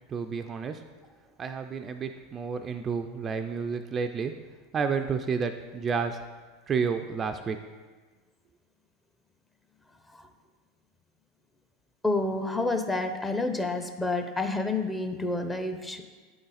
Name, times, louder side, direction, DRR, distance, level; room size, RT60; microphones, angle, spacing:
voice 1, 0.1-0.8 1.4-4.3 4.7-6.2 6.7-7.6, right 5 dB, 30° right, 7 dB, 0.4 m, -30 dB
voice 2, 12.0-16.0, left 2 dB, 10° left, 6 dB, 0.7 m, -29 dB
8.4 x 3.9 x 4.1 m, 1.4 s
hypercardioid pair, 100°, 0 cm